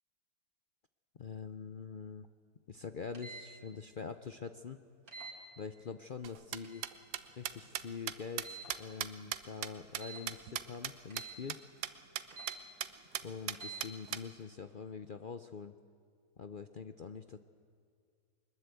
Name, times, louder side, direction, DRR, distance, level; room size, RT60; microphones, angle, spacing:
voice 1, 1.2-2.3 2.7-4.8 5.6-6.8 7.3-11.6 13.2-15.7 16.4-17.4, left 5 dB, 55° left, 9 dB, 0.5 m, -44 dB
sound 1, 3.1-3.5 5.1-5.4 6.6-6.9 8.4-8.8 9.9-10.3 11.1-11.4 12.3-12.6 13.5-13.8, right 4 dB, 65° right, 3.4 m, -47 dB
sound 2, 6.2-10.9 11.2-11.3 11.5-11.6 11.8-11.9 12.2-12.5 12.8-12.9 13.1-14.2, right 11 dB, 80° right, 1.4 m, -38 dB
22.5 x 21.0 x 8.3 m, 2.3 s
omnidirectional pair, 1.7 m